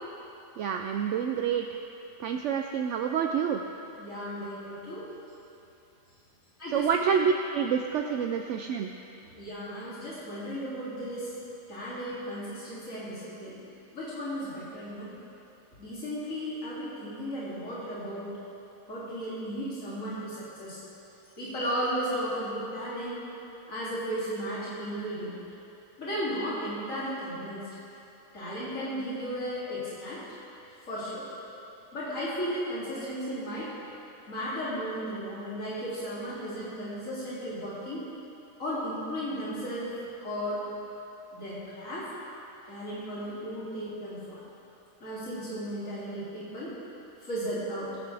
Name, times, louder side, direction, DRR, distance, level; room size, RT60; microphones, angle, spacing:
voice 1, 0.6-1.7 2.2-3.6 6.7-8.9, right 7 dB, 70° right, 4 dB, 0.8 m, -28 dB
voice 2, 4.0-5.1 6.6-7.1 9.4-11.3 11.7-13.5 13.9-15.1 15.8-18.3 18.9-20.8 21.4-23.2 23.7-25.4 26.0-27.6 28.3-30.2 30.9-31.3 31.9-33.7 34.3-38.0 38.6-39.9 40.2-40.6 41.3-42.1 42.7-44.4 45.0-46.7 47.2-47.9, equal, 70° left, -10 dB, 3.4 m, -35 dB
20.5 x 9.6 x 3.4 m, 3.0 s
omnidirectional pair, 1.4 m